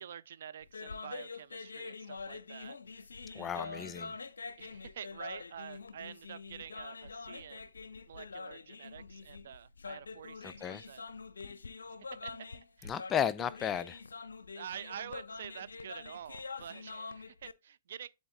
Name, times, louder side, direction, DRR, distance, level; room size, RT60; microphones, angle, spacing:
voice 1, 0.0-3.1 3.3-4.0 4.6-7.7 8.1-11.0 12.1-12.3 12.8-12.9 14.5-18.1, right 9 dB, 60° right, 0.4 m, -48 dB
sound 1, 0.6-17.5, left 4 dB, 75° left, 0.5 m, -45 dB
voice 2, 3.4-4.1 10.4-10.8 12.8-14.0, left 9 dB, 20° left, 0.4 m, -34 dB
11.5 x 4.0 x 2.4 m
figure-of-eight pair, 115°, 0 cm